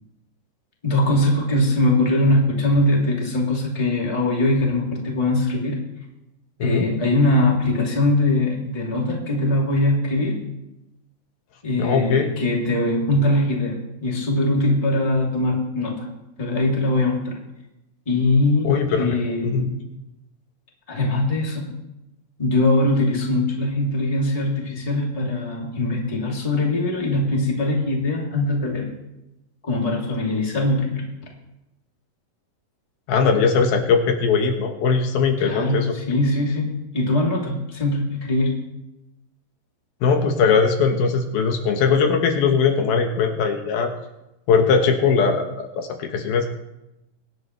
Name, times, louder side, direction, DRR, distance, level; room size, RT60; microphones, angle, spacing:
voice 1, 0.8-5.8 6.6-10.4 11.6-16.1 16.4-17.4 18.1-19.8 20.9-21.8 22.4-28.9 29.6-31.0 35.4-38.6, left 1 dB, 10° left, -2 dB, 2.4 m, -21 dB
voice 2, 11.8-12.3 18.6-19.2 19.4-19.7 33.1-35.9 40.0-43.9 44.5-46.5, left 5 dB, 75° left, 3 dB, 3.1 m, -20 dB
24.0 x 11.0 x 3.3 m, 0.93 s
omnidirectional pair, 4.5 m